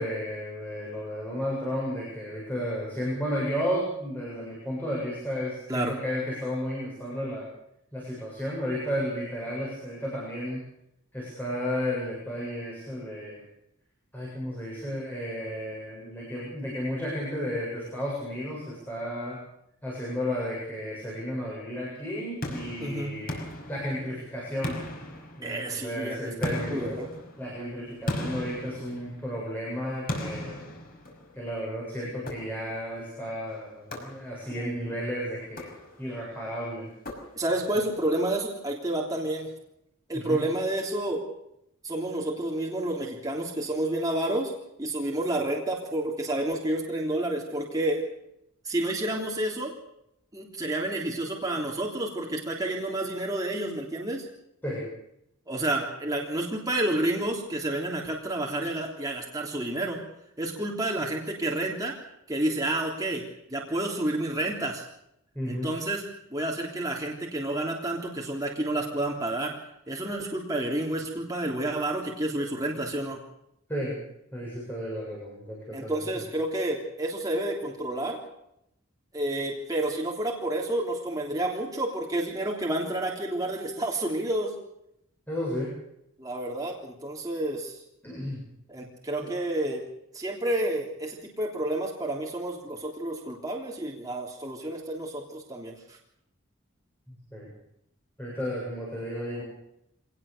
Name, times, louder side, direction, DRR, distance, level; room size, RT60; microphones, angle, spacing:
voice 1, 0.0-7.5 7.9-10.6 11.1-13.4 14.1-19.4 19.8-23.4 23.7-24.8 25.4-26.9 27.4-30.8 31.3-35.7 36.0-36.9 40.1-40.4 54.6-54.8 65.3-65.7 73.7-74.0 74.3-76.1 85.3-85.8 88.0-88.4 89.2-89.3 97.1-97.5 98.2-99.4, equal, 10° left, -5 dB, 7.7 m, -33 dB
sound 1, 22.4-24.2 24.6-25.8 26.4-29.4 30.1-31.5 32.3-32.9 33.9-34.6 35.4-36.2 37.0-37.7, left 1 dB, 45° left, 5.8 m, -37 dB
voice 2, 22.8-23.1 25.4-27.1 34.5-34.9 37.3-39.5 40.1-41.2 41.8-44.5 44.8-48.0 48.6-49.7 50.3-54.2 55.5-60.0 60.4-61.9 62.3-64.8 65.5-66.0 66.3-69.5 69.9-73.2 75.7-78.2 79.1-84.5 86.2-87.8 88.7-89.8 90.1-96.0, right 1 dB, 15° right, -2 dB, 3.4 m, -30 dB
25.0 x 19.0 x 6.9 m, 0.79 s
head